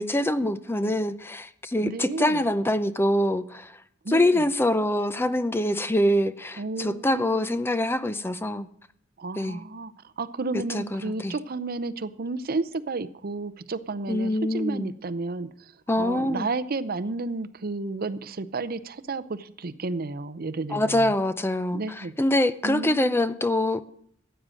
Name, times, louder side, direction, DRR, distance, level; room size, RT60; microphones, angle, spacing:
voice 1, 0.0-3.8 4.1-8.7 9.4-9.6 10.7-11.4 14.1-14.9 15.9-16.5 20.7-23.8, left 1 dB, 10° left, 0.5 m, -25 dB
voice 2, 1.8-2.4 4.0-4.5 6.6-7.6 9.2-9.9 10.2-15.5 16.0-21.1 21.7-22.1 22.6-23.2, right 3 dB, 50° right, 0.6 m, -32 dB
15.0 x 9.0 x 6.3 m
head